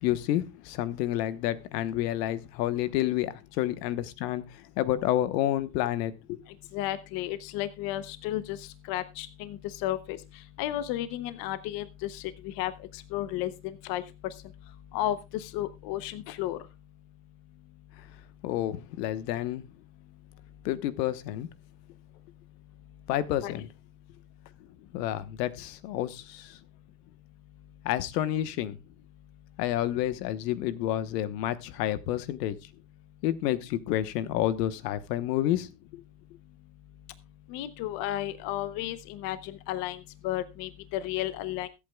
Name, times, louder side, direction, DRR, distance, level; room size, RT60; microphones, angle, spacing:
voice 1, 0.0-6.4 18.4-19.6 20.6-21.5 23.1-23.7 24.9-26.6 27.8-28.8 29.6-32.6 33.2-36.0, left 13 dB, 75° left, 1.2 m, -29 dB
voice 2, 6.7-10.2 10.6-14.0 14.9-16.6 23.4-23.5 37.5-41.7, left 13 dB, 45° left, 0.8 m, -33 dB
22.0 x 8.5 x 2.3 m
supercardioid pair, 140°, 49 cm